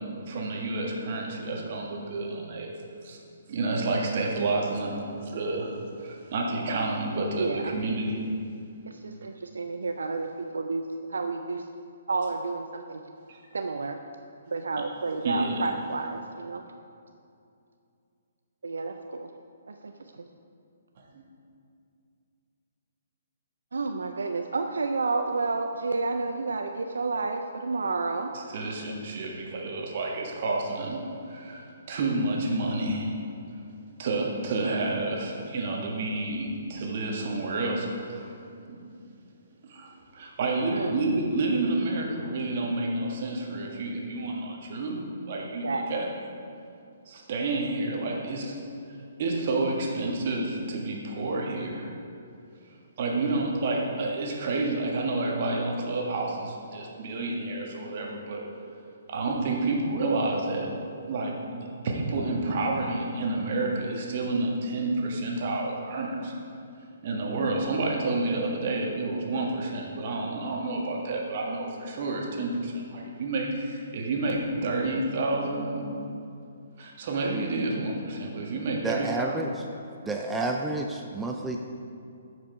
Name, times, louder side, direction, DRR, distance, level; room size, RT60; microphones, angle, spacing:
voice 1, 0.0-2.7 3.0-3.2 3.5-8.2 13.3-13.4 15.2-15.5 21.1-21.2 28.5-31.0 31.3-33.1 34.0-38.3 39.7-46.1 47.0-48.6 49.2-51.9 53.0-58.4 59.1-60.7 61.1-66.3 67.0-75.9 76.8-79.4, right 2 dB, 50° right, -1 dB, 1.5 m, -29 dB
voice 2, 7.4-7.8 8.9-10.8 11.1-11.7 12.1-13.0 13.5-14.0 14.5-16.6 18.6-19.3 19.7-20.2 23.7-28.3 35.5-35.6 40.7-41.0 45.6-45.9, right 3 dB, 70° right, 5 dB, 0.4 m, -30 dB
voice 3, 78.8-79.5 80.0-81.6, right 2 dB, 5° right, 1 dB, 0.4 m, -30 dB
9.0 x 5.0 x 4.8 m, 2.5 s
figure-of-eight pair, 130°, 0 cm